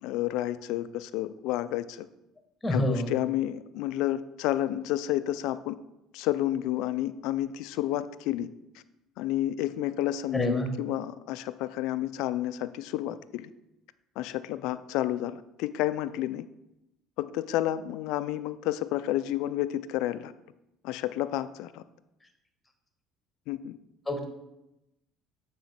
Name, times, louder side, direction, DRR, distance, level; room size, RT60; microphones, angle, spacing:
voice 1, 0.0-2.1 2.7-5.8 6.1-8.5 9.2-13.5 14.2-16.4 17.2-20.3 20.8-21.8 23.5-23.8, left 13 dB, 70° left, 14 dB, 0.3 m, -30 dB
voice 2, 2.6-3.1 10.3-10.7 24.1-24.2, left 1 dB, 10° left, 5 dB, 1.3 m, -27 dB
7.4 x 3.1 x 5.8 m, 0.90 s
hypercardioid pair, 75°, 0 cm